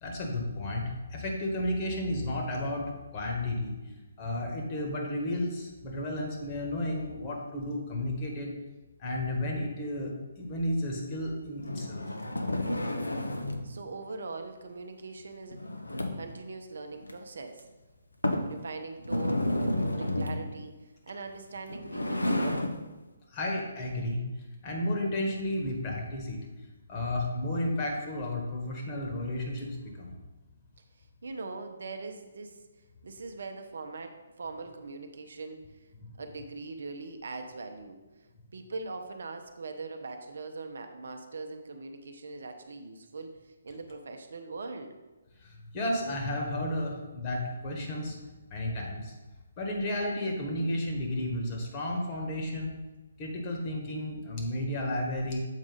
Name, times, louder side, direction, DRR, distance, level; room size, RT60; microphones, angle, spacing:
voice 1, 0.0-3.7 4.2-8.5 9.0-10.1 10.4-12.0 23.3-24.2 24.6-26.4 26.9-30.1 45.7-48.1 48.5-49.1 49.6-52.7 53.2-55.4, left 1 dB, 25° left, 0 dB, 1.5 m, -32 dB
sound 1, 11.6-13.7 15.5-16.4 17.0-17.1 17.6-17.7 18.2-18.6 19.0-20.5 21.6-22.8, left 1 dB, 80° left, 0.8 m, -31 dB
voice 2, 13.6-15.6 15.9-17.7 18.4-22.6 31.2-32.6 33.0-35.6 36.2-38.0 38.5-44.9, right 3 dB, 55° right, 6 dB, 0.7 m, -41 dB
7.3 x 4.8 x 4.0 m, 1.1 s
figure-of-eight pair, 135°, 0 cm